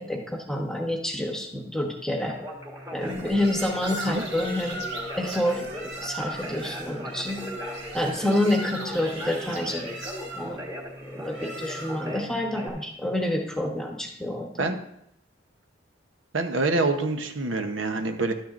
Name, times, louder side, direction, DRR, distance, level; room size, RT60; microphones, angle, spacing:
voice 1, 0.0-2.3 2.9-4.8 5.2-7.4 7.9-9.9 10.3-10.6 11.0-14.7, left 1 dB, 5° left, 1 dB, 1.0 m, -28 dB
Conversation, 2.2-12.7, left 1 dB, 15° right, 1.5 m, -38 dB
sound 1, 3.0-12.2, right 2 dB, 65° right, 1.8 m, -38 dB
voice 2, 16.3-18.3, right 3 dB, 85° right, 6 dB, 0.9 m, -26 dB
12.0 x 10.0 x 2.5 m, 0.75 s
head